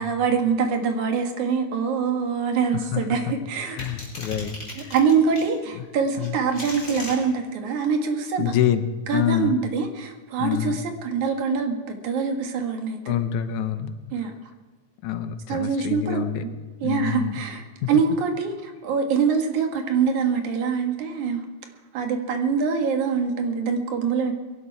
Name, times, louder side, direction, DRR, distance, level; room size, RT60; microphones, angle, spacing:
voice 1, 0.0-3.8 4.8-8.5 9.1-13.1 14.1-14.3 15.5-16.5 16.8-21.5 21.9-24.3, right 5 dB, 75° right, 4 dB, 3.1 m, -24 dB
voice 2, 3.7-4.9 5.8-5.9 6.2-6.4 8.4-9.6 10.4-10.8 13.1-13.9 15.0-16.4 16.8-17.4 17.8-17.9, left 10 dB, 80° left, 10 dB, 2.3 m, -26 dB
sound 1, 3.8-5.5 6.2-7.2, left 2 dB, 25° left, 5.3 m, -36 dB
21.5 x 11.5 x 4.7 m, 1.4 s
omnidirectional pair, 3.4 m